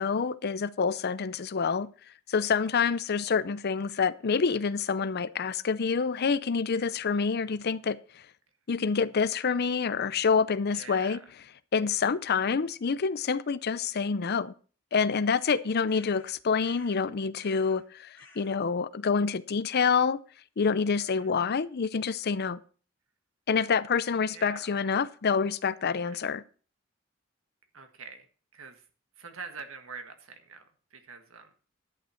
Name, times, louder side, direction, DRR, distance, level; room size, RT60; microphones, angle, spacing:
voice 1, 0.0-1.9 2.3-8.0 8.7-11.2 11.7-14.5 14.9-20.2 20.6-22.6 23.5-26.4, left 5 dB, 50° left, 0.5 m, -27 dB
voice 2, 10.7-11.2 12.3-12.6 21.1-21.3 24.3-24.7 26.0-26.2 27.7-28.3 28.5-28.8 29.2-30.6 30.9-31.5, right 5 dB, 80° right, 1.6 m, -45 dB
sound 1, 15.9-17.1 17.4-17.8 18.1-18.7, left 2 dB, 10° left, 6.4 m, -55 dB
11.0 x 8.9 x 4.4 m
head